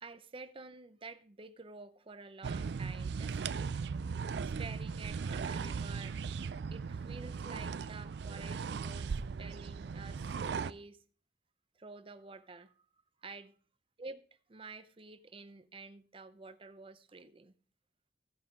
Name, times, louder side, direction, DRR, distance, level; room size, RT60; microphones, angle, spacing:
voice 1, 0.0-3.4 4.4-6.2 6.7-11.0 11.8-12.7 13.2-13.6 14.0-14.2 14.5-17.5, right 3 dB, 30° right, 0.7 m, -50 dB
sound 1, 2.4-10.7, right 5 dB, 65° right, 0.4 m, -38 dB
14.5 x 5.6 x 4.8 m
head